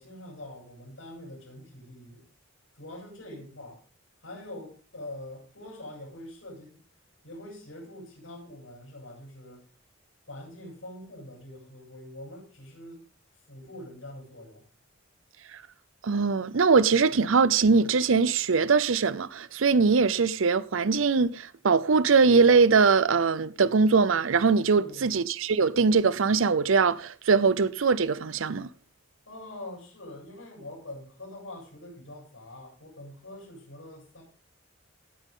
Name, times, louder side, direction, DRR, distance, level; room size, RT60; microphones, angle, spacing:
voice 1, 0.0-2.2 2.8-3.8 4.2-6.8 7.2-9.6 10.3-13.1 13.5-14.6 24.7-25.1 29.3-34.2, left 1 dB, 85° left, 7.6 m, -44 dB
voice 2, 16.0-28.7, right 5 dB, 85° right, 0.6 m, -22 dB
17.5 x 9.2 x 3.7 m
head